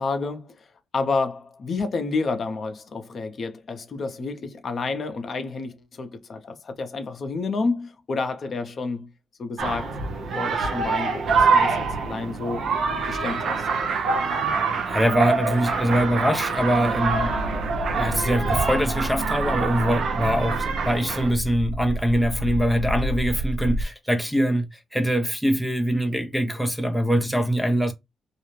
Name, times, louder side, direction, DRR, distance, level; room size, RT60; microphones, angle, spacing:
voice 1, 0.0-9.1 9.4-10.0 10.4-12.7 13.1-13.7, left 4 dB, 45° left, 0.6 m, -30 dB
sound 1, 9.6-21.3, right 4 dB, 60° right, 0.7 m, -25 dB
voice 2, 14.9-17.4 17.9-27.9, equal, ahead, 0.5 m, -23 dB
sound 2, 17.1-23.8, equal, 90° left, 0.5 m, -30 dB
2.4 x 2.1 x 3.1 m
cardioid pair, 90°, 0 cm